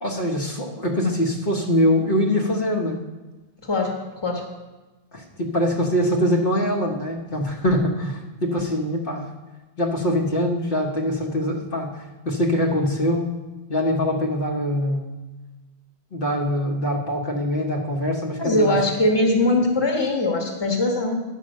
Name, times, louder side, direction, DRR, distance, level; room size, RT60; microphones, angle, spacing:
voice 1, 0.0-3.0 5.1-9.3 9.8-13.3 13.7-15.1 16.1-18.8, left 1 dB, 55° left, -1 dB, 1.2 m, -23 dB
voice 2, 3.6-4.4 18.4-21.2, left 2 dB, 25° left, 2 dB, 1.3 m, -21 dB
9.3 x 5.6 x 6.4 m, 1.2 s
omnidirectional pair, 1.1 m